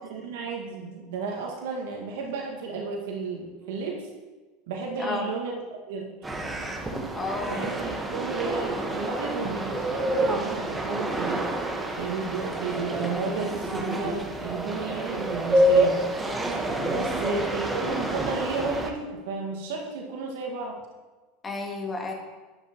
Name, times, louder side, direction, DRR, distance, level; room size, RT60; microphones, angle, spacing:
voice 1, 0.1-4.1 4.7-6.1 7.5-11.5 11.9-16.0 16.8-20.8, right 4 dB, 65° right, -1 dB, 1.9 m, -33 dB
voice 2, 5.0-5.3 7.2-7.7 16.8-17.5 21.4-22.1, left 3 dB, 20° left, 1 dB, 2.4 m, -33 dB
sound 1, 6.2-18.9, right 1 dB, 10° right, 1.4 m, -28 dB
12.0 x 10.5 x 3.1 m, 1.2 s
figure-of-eight pair, 80°, 0 cm